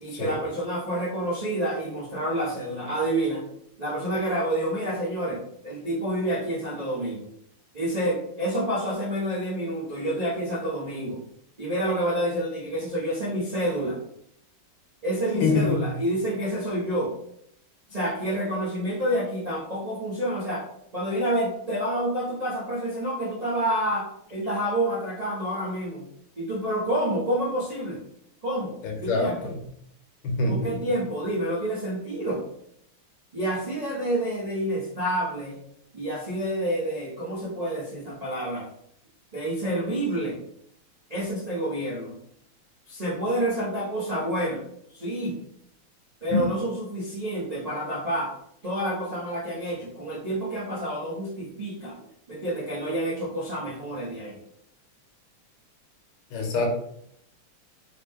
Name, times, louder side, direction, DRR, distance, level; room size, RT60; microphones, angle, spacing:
voice 1, 0.0-3.5 3.8-7.3 7.7-11.2 11.6-14.0 15.0-17.1 17.9-20.6 20.9-26.1 26.4-28.0 28.4-28.7 29.0-29.5 30.5-32.4 33.3-35.6 35.9-38.7 39.3-40.4 41.1-42.1 42.9-44.6 44.9-45.3 46.2-48.3 48.6-51.9 52.3-54.4, right 1 dB, 55° right, -8 dB, 0.4 m, -28 dB
voice 2, 15.3-15.9 28.8-29.6 30.2-30.7 46.3-46.4 56.3-56.7, left 3 dB, 65° left, 1 dB, 1.6 m, -25 dB
4.8 x 2.2 x 3.5 m, 0.70 s
omnidirectional pair, 2.4 m